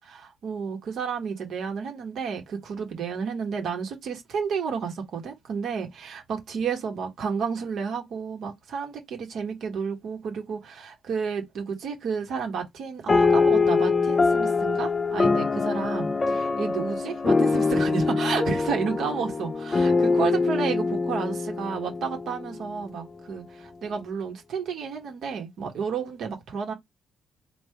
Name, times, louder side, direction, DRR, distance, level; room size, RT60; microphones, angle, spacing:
voice 1, 0.0-26.7, right 6 dB, 70° right, 1.3 m, -31 dB
sound 1, 13.1-22.8, left 4 dB, 30° left, 0.5 m, -24 dB
3.4 x 2.4 x 4.5 m
cardioid pair, 90°, 0 cm